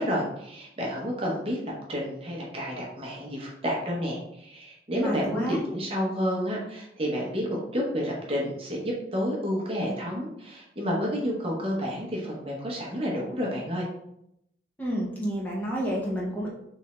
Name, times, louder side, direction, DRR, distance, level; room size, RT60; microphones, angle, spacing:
voice 1, 0.0-1.6 1.9-13.9, equal, 30° right, -2 dB, 0.8 m, -30 dB
voice 2, 4.9-5.6 14.8-16.5, equal, 10° left, -5 dB, 0.7 m, -30 dB
3.4 x 3.2 x 3.0 m, 0.80 s
head